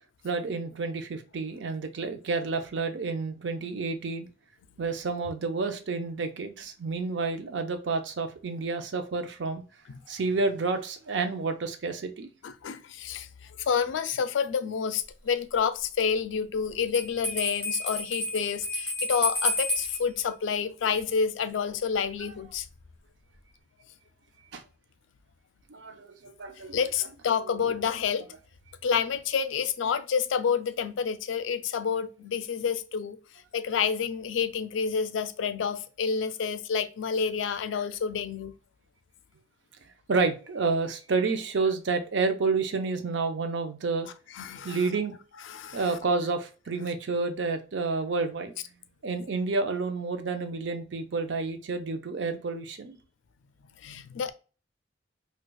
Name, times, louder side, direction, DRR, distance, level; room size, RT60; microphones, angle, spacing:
voice 1, 0.2-4.3 4.8-9.6 10.1-12.3 24.5-24.6 25.7-26.8 40.1-44.1 44.6-45.1 45.7-48.5 49.0-53.0, right 4 dB, 75° right, 0.5 m, -29 dB
voice 2, 12.4-13.3 13.6-22.7 26.7-28.3 28.8-33.2 33.5-38.5 44.3-44.8 45.4-45.8 53.8-54.3, left 6 dB, 90° left, 0.4 m, -29 dB
Bell, 16.9-20.0, left 1 dB, 10° left, 1.4 m, -30 dB
4.5 x 2.3 x 2.2 m
head